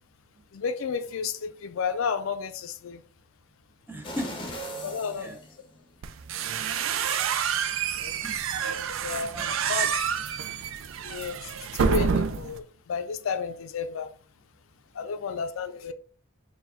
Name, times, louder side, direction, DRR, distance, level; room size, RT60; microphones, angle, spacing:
voice 1, 0.5-3.0 4.8-5.3 8.0-8.1 9.0-9.4 9.7-9.9 11.0-14.1 14.9-15.9, left 6 dB, 80° left, 0.4 m, -32 dB
voice 2, 3.9-5.4 7.6-8.4 9.3-10.2 15.0-15.3, equal, 10° right, 0.5 m, -41 dB
sound 1, 4.0-6.2 6.6-6.7, equal, 25° left, 0.7 m, -39 dB
sound 2, 6.0-12.6, right 7 dB, 70° right, 0.4 m, -28 dB
4.7 x 2.2 x 3.6 m
head